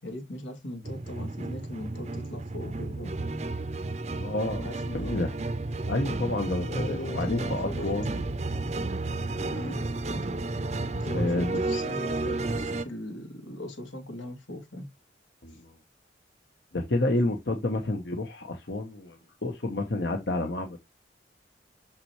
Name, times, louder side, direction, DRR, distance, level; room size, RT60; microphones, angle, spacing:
voice 1, 0.0-3.2 4.6-5.3 6.4-8.3 9.5-9.8 10.3-10.4 10.9-14.9, left 1 dB, 90° left, 2.6 m, -39 dB
sound 1, 0.8-12.9, right 2 dB, 35° right, 0.6 m, -32 dB
voice 2, 4.2-5.3 5.9-8.1 9.4-9.8 11.1-11.6 15.4-15.7 16.7-20.8, left 2 dB, 65° left, 1.1 m, -30 dB
6.5 x 5.9 x 3.1 m
head